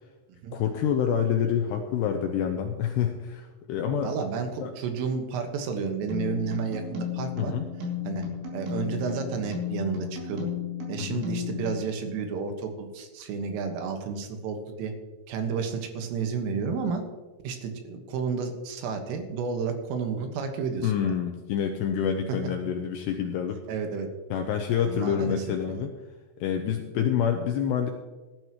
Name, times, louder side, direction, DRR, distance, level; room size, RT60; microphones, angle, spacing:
voice 1, 0.5-4.1 4.6-4.7 7.4-7.7 11.0-11.2 20.8-23.6 24.3-25.9 26.4-27.9, left 8 dB, 85° left, 4 dB, 2.5 m, -27 dB
voice 2, 4.0-7.5 8.1-8.2 8.5-10.5 10.9-14.9 15.3-17.0 17.4-21.1 22.3-22.4 23.7-24.1 24.9-25.9, right 5 dB, 85° right, 5 dB, 4.0 m, -31 dB
sound 1, 6.1-11.8, left 7 dB, 65° right, 4.9 m, -34 dB
18.0 x 12.0 x 3.0 m, 1.2 s
omnidirectional pair, 5.7 m